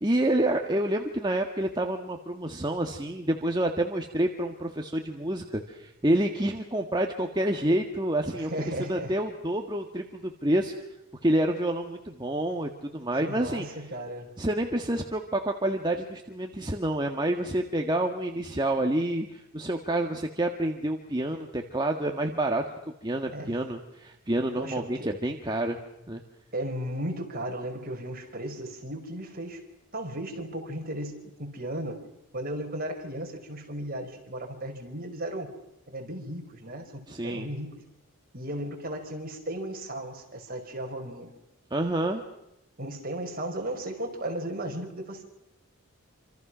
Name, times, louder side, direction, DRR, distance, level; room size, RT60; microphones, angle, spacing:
voice 1, 0.0-8.5 8.9-10.7 11.2-13.7 14.4-22.6 23.0-25.8 26.1-26.2 37.1-37.5 41.7-42.2, right 1 dB, 20° right, 3 dB, 1.7 m, -28 dB
voice 2, 8.4-9.1 13.2-14.3 23.3-23.6 24.6-25.1 26.5-29.6 29.9-32.0 32.3-35.5 35.9-37.7 38.3-41.3 42.8-45.2, right 1 dB, 40° right, 4 dB, 5.2 m, -35 dB
28.0 x 27.0 x 6.3 m, 0.89 s
head